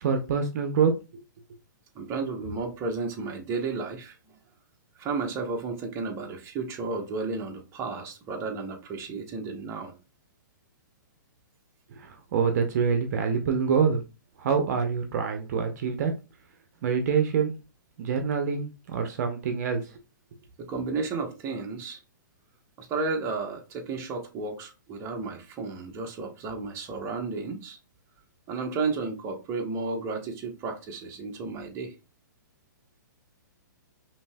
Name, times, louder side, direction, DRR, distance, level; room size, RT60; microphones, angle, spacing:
voice 1, 0.0-0.9 11.9-14.0 14.4-16.1 16.8-17.5 18.0-19.9, right 6 dB, 55° right, 0.7 m, -26 dB
voice 2, 1.9-4.2 5.0-10.0 20.6-22.0 22.8-27.8 28.5-31.9, right 4 dB, 25° right, 0.9 m, -33 dB
5.2 x 2.8 x 2.2 m
hypercardioid pair, 135°, 11 cm